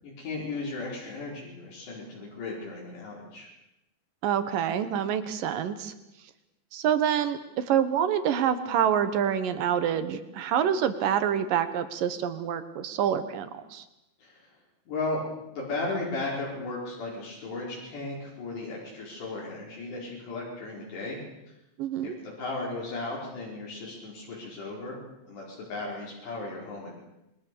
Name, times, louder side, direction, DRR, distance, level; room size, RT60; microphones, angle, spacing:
voice 1, 0.0-3.5 14.2-14.5 14.9-15.2 15.5-21.2 22.0-22.1 22.4-25.0 25.3-26.9, left 3 dB, 60° left, -5 dB, 6.9 m, -35 dB
voice 2, 4.2-5.9 6.7-13.8 21.8-22.1, right 9 dB, 65° right, 10 dB, 2.3 m, -27 dB
27.5 x 22.5 x 6.9 m, 0.90 s
omnidirectional pair, 5.4 m